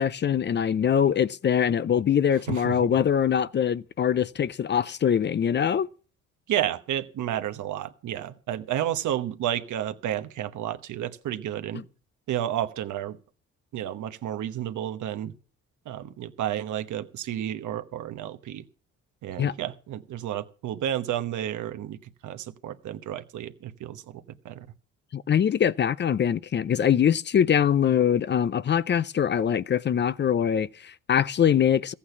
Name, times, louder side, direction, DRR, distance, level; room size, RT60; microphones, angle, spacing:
voice 1, 0.0-5.9 19.4-19.5 25.1-31.9, left 8 dB, 35° left, 0.5 m, -23 dB
voice 2, 2.5-2.9 6.5-11.8 12.3-13.2 13.7-15.3 15.9-18.6 19.2-24.7, right 11 dB, 75° right, 1.1 m, -31 dB
14.5 x 8.6 x 5.8 m
cardioid pair, 90°, 30 cm